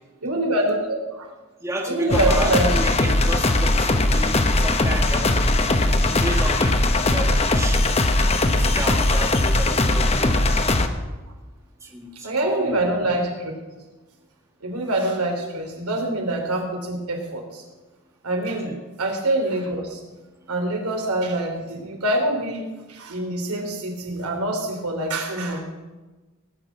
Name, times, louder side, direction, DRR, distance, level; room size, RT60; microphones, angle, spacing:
voice 1, 0.2-1.3 1.9-2.8 12.2-13.5 14.6-17.6 18.2-20.0 20.5-25.6, right 1 dB, 90° right, 2 dB, 3.1 m, -25 dB
voice 2, 1.6-5.7 6.1-8.1 8.3-10.4 11.8-12.8 18.6-18.7, right 1 dB, 15° right, -1 dB, 1.7 m, -32 dB
sound 1, 2.1-10.9, left 2 dB, 30° left, 0.8 m, -19 dB
17.5 x 6.2 x 8.6 m, 1.2 s
head